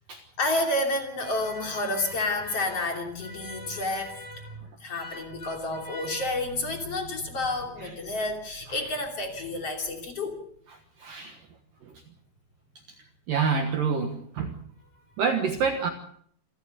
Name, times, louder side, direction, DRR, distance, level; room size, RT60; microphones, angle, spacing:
voice 1, 0.4-10.4, left 2 dB, 35° left, 3 dB, 3.1 m, -30 dB
voice 2, 11.0-11.4 13.3-14.5 15.2-15.9, right 5 dB, 70° right, 5 dB, 2.1 m, -26 dB
27.5 x 14.5 x 6.6 m, 0.67 s
omnidirectional pair, 5.9 m